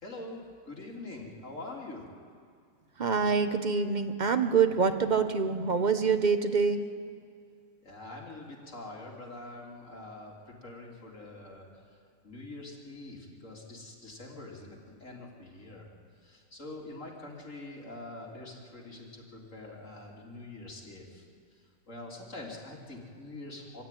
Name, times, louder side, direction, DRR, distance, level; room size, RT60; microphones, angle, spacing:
voice 1, 0.0-2.1 7.8-11.7 12.2-15.9 16.2-21.3 21.5-23.8, left 2 dB, 45° left, -3 dB, 3.7 m, -45 dB
voice 2, 3.0-6.8, right 5 dB, 30° right, 8 dB, 1.0 m, -26 dB
24.0 x 15.5 x 9.2 m, 2.2 s
omnidirectional pair, 1.8 m